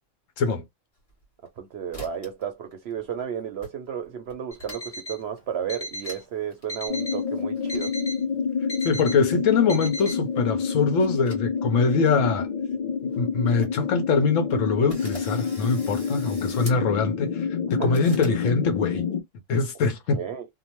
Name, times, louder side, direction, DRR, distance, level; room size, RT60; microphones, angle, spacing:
sound 1, 1.0-1.6 1.9-2.4 2.7-3.2 3.6-3.7 4.0-5.0 5.4-5.5 6.0-6.2 6.5-6.7 7.3-7.9 9.1-10.2 10.7-11.8 12.1-12.2 12.8-12.9 13.1-13.2 13.4-13.7 14.2-14.3 14.9-16.8 17.9-18.4, left 1 dB, 30° left, 1.3 m, -44 dB
voice 1, 1.6-7.9 17.7-17.9 20.2-20.5, right 8 dB, 65° right, 0.7 m, -33 dB
Alarm, 4.5-5.2 5.7-6.2 6.7-7.2 7.7-8.2 8.7-9.2 9.7-10.2, equal, 10° left, 0.9 m, -36 dB
sound 2, 6.9-19.2, left 6 dB, 50° left, 0.5 m, -28 dB
voice 2, 8.8-12.5 13.2-19.0 19.5-20.2, left 4 dB, 75° left, 1.1 m, -23 dB
2.8 x 2.1 x 2.9 m
omnidirectional pair, 1.4 m